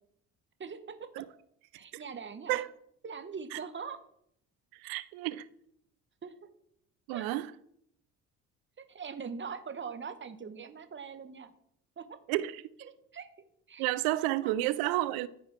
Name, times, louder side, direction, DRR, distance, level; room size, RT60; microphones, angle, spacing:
voice 1, 0.6-1.2 1.7-2.6 3.0-4.0 6.2-6.3 7.1-7.3 8.9-11.5 12.0-12.1 12.8-13.3 13.7-13.9 14.4-14.5, right 6 dB, 30° right, 1.2 m, -42 dB
voice 2, 4.8-5.5 7.1-7.5 12.3-12.6 13.8-15.3, right 16 dB, 70° right, 0.6 m, -31 dB
14.0 x 4.8 x 3.3 m
hypercardioid pair, 55°, 38 cm